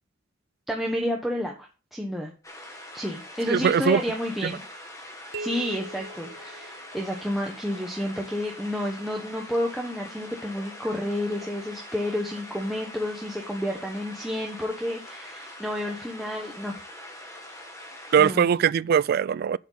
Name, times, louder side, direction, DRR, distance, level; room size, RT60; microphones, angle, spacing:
voice 1, 0.7-2.3 2.9-4.6 5.4-16.8 18.2-18.5, left 1 dB, ahead, 1.0 m, -30 dB
sound 1, 2.4-18.3, left 1 dB, 15° left, 1.8 m, -43 dB
voice 2, 3.5-4.0 4.4-4.6 18.1-19.6, right 7 dB, 50° right, 0.3 m, -21 dB
sound 2, 5.3-7.3, right 1 dB, 85° right, 0.8 m, -40 dB
8.1 x 7.3 x 3.9 m
head